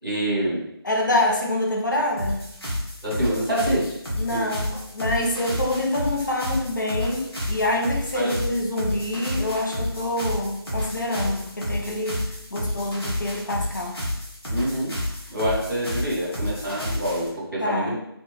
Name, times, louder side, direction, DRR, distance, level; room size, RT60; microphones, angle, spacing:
voice 1, 0.0-0.6 3.0-3.9 4.3-4.4 8.1-8.3 14.5-14.9 15.3-18.0, right 1 dB, 5° left, -20 dB, 0.8 m, -26 dB
voice 2, 0.8-2.4 4.2-12.2 12.5-14.0 17.6-18.0, left 1 dB, 50° left, 0 dB, 0.5 m, -26 dB
sound 1, 2.2-17.3, left 1 dB, 70° left, 1.2 m, -30 dB
2.9 x 2.2 x 2.4 m, 0.80 s
figure-of-eight pair, 165°, 13 cm